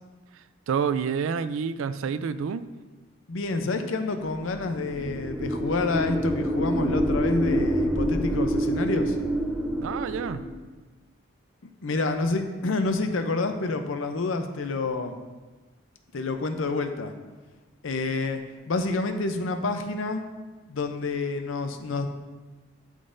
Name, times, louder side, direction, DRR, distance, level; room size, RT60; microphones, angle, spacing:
voice 1, 0.7-2.6 9.8-10.4, right 6 dB, 75° right, 13 dB, 0.3 m, -28 dB
voice 2, 3.3-9.2 11.8-15.2 16.1-17.1 17.8-20.2 20.7-22.1, left 3 dB, 70° left, 7 dB, 0.6 m, -28 dB
sound 1, 4.5-10.6, equal, 5° right, 0.4 m, -27 dB
11.5 x 3.8 x 2.6 m, 1.3 s
head